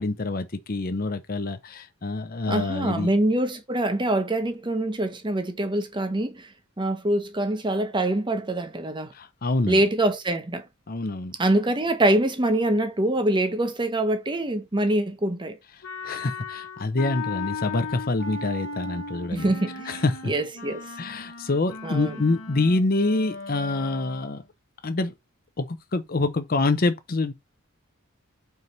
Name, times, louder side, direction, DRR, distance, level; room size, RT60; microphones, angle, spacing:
voice 1, 0.0-3.1 9.1-9.8 10.9-11.3 16.0-19.5 19.9-20.3 21.0-24.4 24.8-25.1 25.6-27.3, left 2 dB, 40° left, 0.7 m, -26 dB
voice 2, 2.5-6.5 6.8-9.1 9.7-10.6 11.4-15.6 19.3-20.9 21.8-22.2, right 1 dB, 20° right, 0.8 m, -24 dB
Wind instrument woodwind instrument, 15.8-24.5, left 4 dB, 65° left, 1.2 m, -37 dB
4.6 x 4.2 x 5.3 m
head